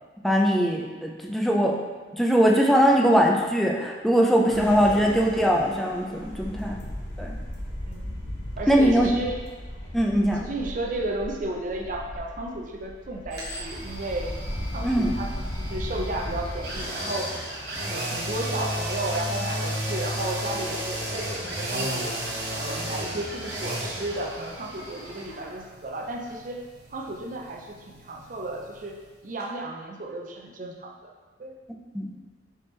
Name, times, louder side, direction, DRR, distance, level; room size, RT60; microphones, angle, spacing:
voice 1, 0.2-1.8 2.1-6.7 7.2-7.3 8.7-9.1 9.9-10.4 14.8-15.2 31.9-32.1, equal, ahead, -1 dB, 0.4 m, -21 dB
sound 1, 4.5-16.8, equal, 90° left, 0.9 m, -36 dB
voice 2, 4.5-4.8 7.9-8.1 8.6-9.4 10.4-14.3 14.7-17.4 17.8-22.1 22.5-26.6 26.9-29.0 29.2-31.1 31.4-31.5, right 1 dB, 45° right, 1 dB, 0.5 m, -33 dB
sound 2, 13.3-29.1 29.4-29.5, right 1 dB, 70° right, 1.1 m, -34 dB
4.4 x 3.4 x 3.2 m, 1.4 s
head